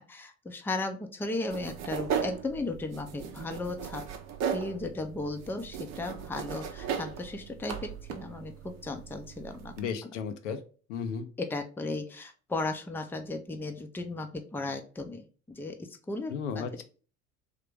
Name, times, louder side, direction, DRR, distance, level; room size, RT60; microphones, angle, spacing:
voice 1, 0.0-4.0 4.5-9.7 11.4-16.8, left 2 dB, 5° left, 5 dB, 0.6 m, -36 dB
sound 1, 1.5-9.9, right 7 dB, 45° right, 0.7 m, -37 dB
voice 2, 9.8-10.6 10.9-11.3 16.3-16.8, left 6 dB, 70° left, 7 dB, 0.7 m, -34 dB
3.5 x 2.8 x 3.3 m, 0.38 s
figure-of-eight pair, 65°, 37 cm